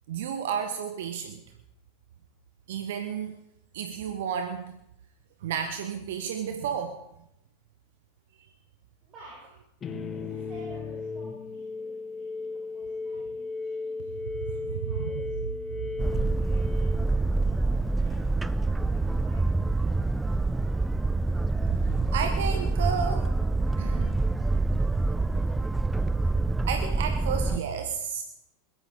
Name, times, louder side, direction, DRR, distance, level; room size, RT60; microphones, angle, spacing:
voice 1, 0.1-1.4 2.7-3.4 3.7-4.7 5.4-7.0 9.9-10.0 14.2-15.1 15.7-16.3 21.7-23.3 23.8-24.1 26.7-28.2, right 7 dB, 65° right, 6 dB, 1.2 m, -32 dB
voice 2, 9.0-9.6 10.1-14.1 14.6-15.2 16.0-18.2 18.6-19.4, right 2 dB, 35° right, -6 dB, 6.2 m, -53 dB
sound 1, 9.8-17.7, left 3 dB, 25° left, 1.2 m, -36 dB
Boat Water vehicle, 16.0-27.6, right 2 dB, 10° right, 0.4 m, -26 dB
21.0 x 13.5 x 3.8 m, 0.81 s
figure-of-eight pair, 85°, 0 cm